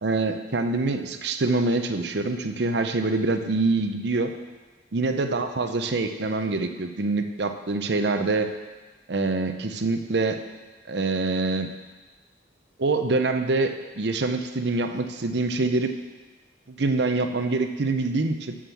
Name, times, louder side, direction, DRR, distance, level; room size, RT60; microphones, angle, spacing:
voice 1, 0.0-4.3 4.9-8.5 9.1-10.4 10.9-11.7 12.8-15.9 16.7-18.6, right 3 dB, 65° right, 7 dB, 0.7 m, -25 dB
7.4 x 6.3 x 6.9 m, 1.2 s
head